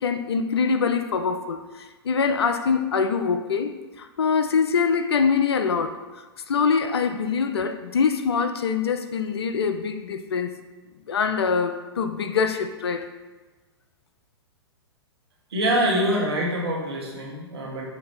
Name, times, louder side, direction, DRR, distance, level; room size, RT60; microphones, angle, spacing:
voice 1, 0.0-6.0 6.5-10.6 11.1-13.1, left 5 dB, 70° left, 9 dB, 0.4 m, -24 dB
voice 2, 15.5-17.9, equal, 65° right, -3 dB, 1.3 m, -25 dB
5.4 x 2.6 x 3.3 m, 1.3 s
figure-of-eight pair, 105°, 14 cm